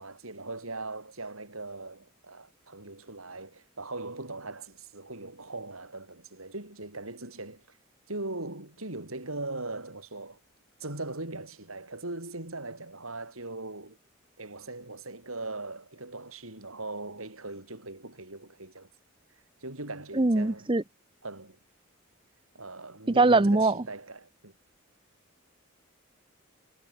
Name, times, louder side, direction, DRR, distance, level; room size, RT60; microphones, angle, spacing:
voice 1, 0.0-7.8 8.1-10.4 10.8-14.0 14.4-18.9 19.6-20.7 21.2-21.6 22.5-24.5, right 2 dB, 90° right, 7.7 m, -40 dB
voice 2, 20.2-20.8 23.2-23.7, right 2 dB, 25° right, 0.7 m, -21 dB
head